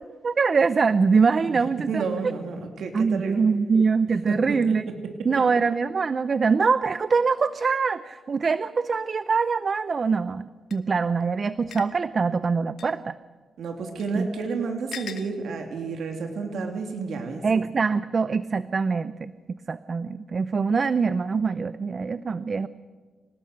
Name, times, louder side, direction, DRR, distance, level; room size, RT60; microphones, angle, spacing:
voice 1, 0.2-2.0 2.9-4.9 5.2-13.2 14.1-14.3 17.4-22.7, right 5 dB, 45° right, 15 dB, 0.6 m, -23 dB
voice 2, 1.9-3.4 4.3-4.6 13.6-17.4, right 4 dB, 80° right, 3 dB, 2.7 m, -31 dB
sound 1, 10.7-10.8 11.7-11.9 12.8-12.9 14.0-14.1 14.9-15.3, left 8 dB, 75° left, 1.7 m, -38 dB
27.5 x 18.5 x 6.6 m, 1.5 s
cardioid pair, 95°, 0 cm